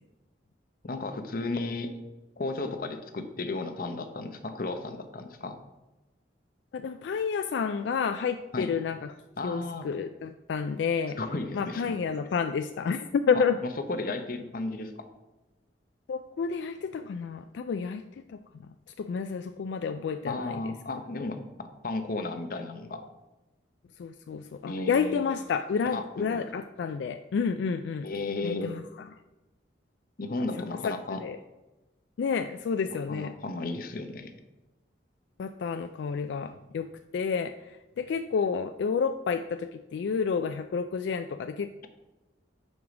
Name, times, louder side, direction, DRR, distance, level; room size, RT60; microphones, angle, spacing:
voice 1, 0.8-1.9 2.4-5.6 8.5-8.7 9.4-9.9 11.2-12.0 13.3-13.4 13.9-14.9 20.3-23.0 24.7-25.2 25.8-26.4 28.0-28.7 30.2-31.2 33.1-34.3, left 2 dB, 55° left, 7 dB, 0.8 m, -34 dB
voice 2, 6.7-9.1 9.4-11.2 11.5-13.6 16.1-18.4 19.0-20.6 21.2-21.3 24.0-28.1 28.4-29.1 30.8-31.4 32.2-33.3 35.4-41.9, left 6 dB, 80° left, 9 dB, 0.3 m, -30 dB
5.3 x 4.8 x 6.0 m, 1.0 s
head